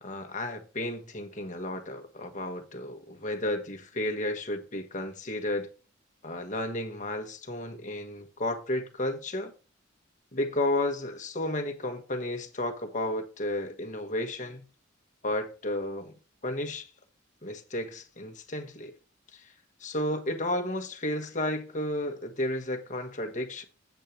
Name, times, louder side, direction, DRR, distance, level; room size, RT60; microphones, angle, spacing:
voice 1, 0.0-5.7 6.2-9.5 10.3-14.7 15.2-16.1 16.4-16.8 17.4-18.9 19.3-19.5 19.8-23.6, left 1 dB, 40° left, 1.4 m, -32 dB
8.3 x 6.6 x 4.4 m
head